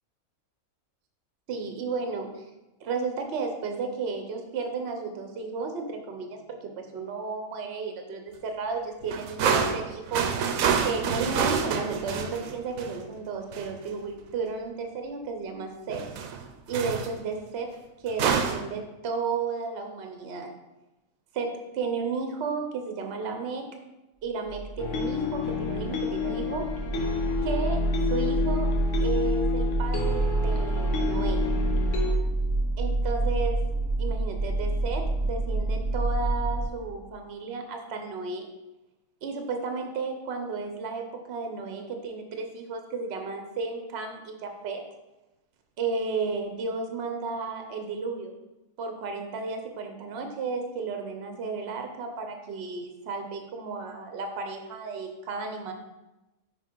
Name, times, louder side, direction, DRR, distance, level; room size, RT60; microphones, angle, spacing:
voice 1, 1.5-2.5 2.8-10.3 10.8-16.0 16.7-17.7 18.0-20.5 21.3-23.7 24.2-26.7 27.4-28.7 29.0-31.5 32.8-33.6 34.0-38.5 39.2-44.8 45.8-48.3 48.8-55.7, right 4 dB, 55° right, 5 dB, 0.9 m, -33 dB
sound 1, 9.0-13.1 13.5-13.7 15.9-16.5 16.7-17.1 18.1-18.6, right 6 dB, 80° right, 1.1 m, -27 dB
sound 2, 24.4-36.7, right 2 dB, 5° left, 0.5 m, -28 dB
sound 3, 24.8-32.1, left 6 dB, 65° left, 1.1 m, -30 dB
5.8 x 4.2 x 4.6 m, 1.0 s
omnidirectional pair, 1.4 m